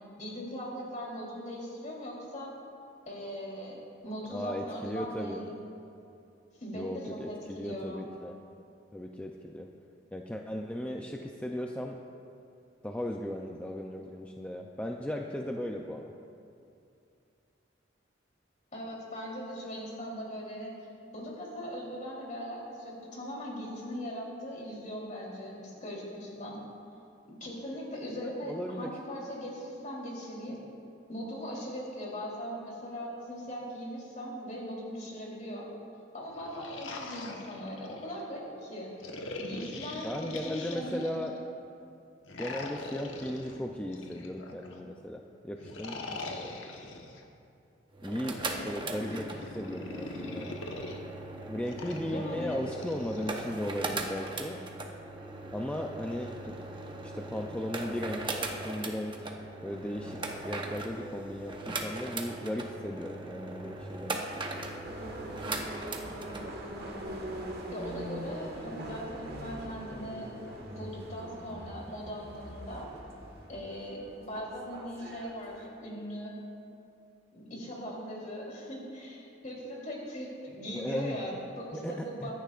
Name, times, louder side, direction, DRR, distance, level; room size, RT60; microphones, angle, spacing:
voice 1, 0.2-2.5 3.1-5.5 6.6-8.0 18.7-20.7 21.1-26.6 27.4-30.6 31.1-35.7 36.1-38.9 39.4-41.1 52.0-52.6 67.7-70.3 70.7-72.9 73.5-76.3 77.3-82.3, equal, 40° left, -4 dB, 3.4 m, -40 dB
voice 2, 4.3-5.5 6.7-8.4 8.9-9.7 10.1-12.0 12.8-16.1 28.2-28.9 40.0-41.4 42.4-46.6 48.0-48.4 48.6-50.6 51.5-54.6 55.5-56.6 57.0-59.3 59.6-64.2 80.7-81.2 81.7-81.9 82.2-82.3, equal, 5° left, 1 dB, 0.5 m, -37 dB
sound 1, 36.3-38.2 39.0-41.4 42.2-44.8 45.6-47.2 48.2-51.0 51.7-53.3, left 2 dB, 85° left, 1.2 m, -42 dB
sound 2, 47.9-66.5, right 2 dB, 25° right, 0.9 m, -39 dB
sound 3, 64.8-75.7, right 1 dB, 55° right, 1.6 m, -42 dB
24.0 x 10.5 x 2.5 m, 2.6 s
head